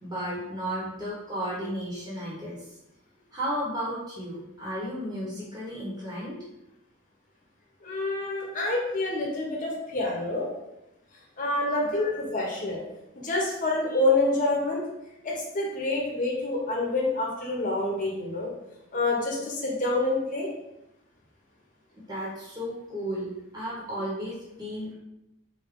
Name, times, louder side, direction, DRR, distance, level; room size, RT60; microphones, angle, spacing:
voice 1, 0.0-2.7 3.3-6.4 8.4-8.7 11.8-12.1 21.9-24.9, equal, 20° right, -7 dB, 1.1 m, -34 dB
voice 2, 7.8-10.5 11.4-12.8 13.2-14.8 15.2-18.5 18.9-20.5, left 2 dB, 40° left, -2 dB, 1.0 m, -27 dB
4.6 x 2.8 x 3.7 m, 0.88 s
head